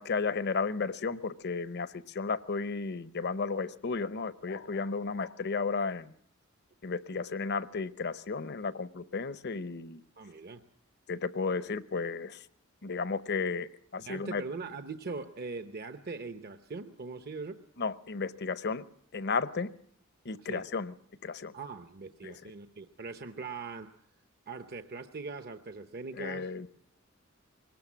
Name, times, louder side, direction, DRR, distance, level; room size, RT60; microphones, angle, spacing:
voice 1, 0.0-6.1 6.8-10.0 11.1-12.5 12.8-14.4 17.8-18.8 19.1-19.7 20.2-20.9 21.2-21.5 22.2-22.3 26.1-26.8, left 4 dB, 55° left, 15 dB, 0.8 m, -33 dB
voice 2, 10.2-10.6 14.0-17.6 20.4-20.6 21.5-24.0 24.5-26.5, right 4 dB, 50° right, 9 dB, 0.8 m, -41 dB
22.0 x 18.5 x 7.2 m, 0.62 s
head